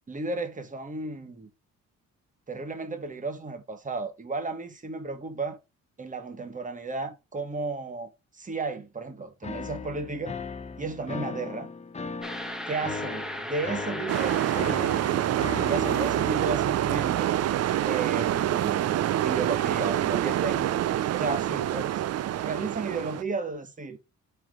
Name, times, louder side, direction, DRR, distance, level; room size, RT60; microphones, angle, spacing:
voice 1, 0.1-1.5 2.5-5.6 6.0-10.4 10.8-11.7 12.7-14.9 15.6-17.3 17.8-18.9 19.2-20.7 21.1-22.0 22.4-24.0, right 3 dB, 25° right, 1.6 m, -33 dB
sound 1, 9.4-16.3, left 4 dB, 20° left, 0.9 m, -37 dB
sound 2, 12.2-16.1, equal, ahead, 1.3 m, -38 dB
sound 3, 14.1-23.2, right 12 dB, 55° right, 0.5 m, -26 dB
5.8 x 4.5 x 3.8 m
cardioid pair, 90°, 30 cm